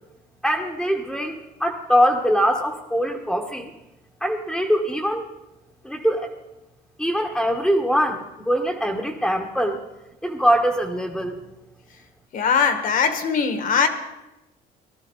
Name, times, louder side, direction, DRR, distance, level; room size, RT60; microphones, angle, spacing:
voice 1, 0.4-3.7 4.2-5.3 5.8-6.3 7.0-9.8 10.2-11.4, equal, ahead, 1 dB, 1.3 m, -22 dB
voice 2, 12.3-13.9, left 6 dB, 55° left, 8 dB, 1.7 m, -20 dB
18.5 x 12.5 x 4.0 m, 0.98 s
cardioid pair, 110°, 17 cm